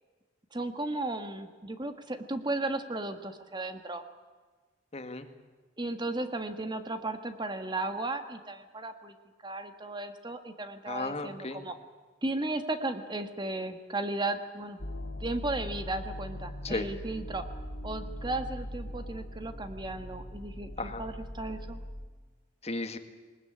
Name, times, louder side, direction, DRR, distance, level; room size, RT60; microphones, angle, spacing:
voice 1, 0.5-4.0 5.8-9.1 9.4-11.7 12.2-14.8 15.2-17.4 17.8-21.8, right 2 dB, 25° right, 8 dB, 1.5 m, -35 dB
voice 2, 4.9-5.3 10.9-11.6 16.6-16.9 20.8-21.0 22.6-23.0, left 2 dB, 35° left, 8 dB, 1.9 m, -34 dB
sound 1, 14.8-22.1, equal, 80° left, 3.0 m, -40 dB
20.5 x 20.0 x 9.9 m, 1.4 s
head